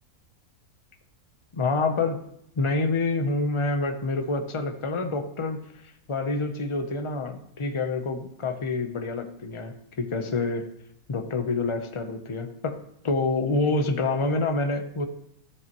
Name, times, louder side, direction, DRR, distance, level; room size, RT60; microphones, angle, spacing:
voice 1, 1.5-2.2 2.6-5.6 6.1-10.7 11.1-12.8 13.0-15.1, left 3 dB, 30° left, 6 dB, 0.6 m, -27 dB
13.5 x 7.7 x 3.0 m, 0.75 s
omnidirectional pair, 1.5 m